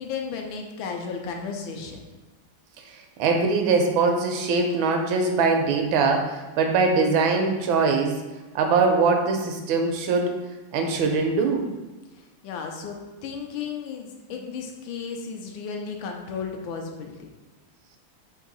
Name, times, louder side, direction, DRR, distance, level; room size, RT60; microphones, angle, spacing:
voice 1, 0.0-2.0 12.1-17.3, left 5 dB, 85° left, 3 dB, 1.4 m, -34 dB
voice 2, 2.9-8.2 8.5-10.3 10.7-11.7, right 4 dB, 90° right, 3 dB, 1.4 m, -22 dB
4.0 x 2.6 x 3.8 m, 1.2 s
omnidirectional pair, 2.1 m